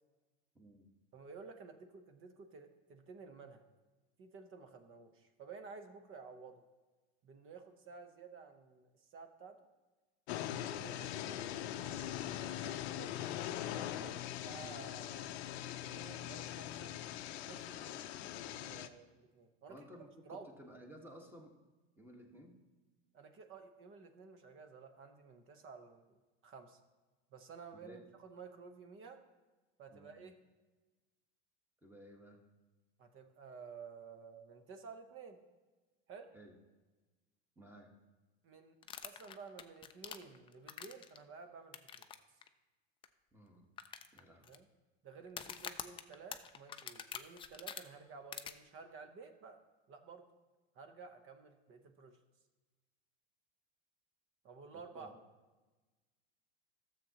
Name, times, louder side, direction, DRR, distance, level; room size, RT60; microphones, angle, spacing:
voice 1, 0.5-0.9 19.7-21.5 22.0-22.6 27.8-28.0 29.9-30.1 31.8-32.4 36.3-36.5 37.6-37.9 43.3-43.7 44.1-44.5 54.7-55.1, equal, 5° right, 1 dB, 1.4 m, -56 dB
voice 2, 1.1-3.6 4.2-6.6 7.2-9.7 10.4-16.9 17.5-19.8 20.2-20.5 23.1-26.2 26.4-26.8 27.3-29.2 29.8-30.4 33.0-35.4 36.1-36.3 38.4-38.8 39.0-42.1 44.4-44.7 45.0-49.6 49.9-50.3 50.7-52.2 54.4-55.1, right 5 dB, 40° right, 7 dB, 0.9 m, -53 dB
sound 1, 10.3-18.9, left 12 dB, 75° left, 0.6 m, -42 dB
sound 2, 38.8-41.2 41.7-42.1 42.4-42.5 43.0-43.1 43.8-44.6 45.3-47.8 48.3-48.5, left 8 dB, 15° left, 0.3 m, -45 dB
12.5 x 7.3 x 2.9 m, 1.2 s
supercardioid pair, 110°, 33 cm